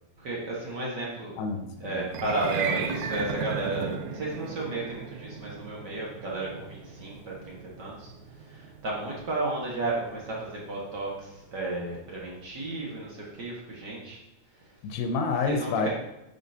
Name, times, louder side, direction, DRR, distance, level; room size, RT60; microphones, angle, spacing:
voice 1, 0.2-1.3 1.8-8.1 8.4-14.2 14.6-14.8 15.4-15.9, right 2 dB, 45° right, -4 dB, 1.4 m, -33 dB
voice 2, 1.4-2.1 14.8-15.9, left 4 dB, 90° left, 6 dB, 2.5 m, -28 dB
sound 1, 2.0-12.4, right 6 dB, 85° right, 1.5 m, -37 dB
8.9 x 6.2 x 2.8 m, 0.95 s
omnidirectional pair, 4.0 m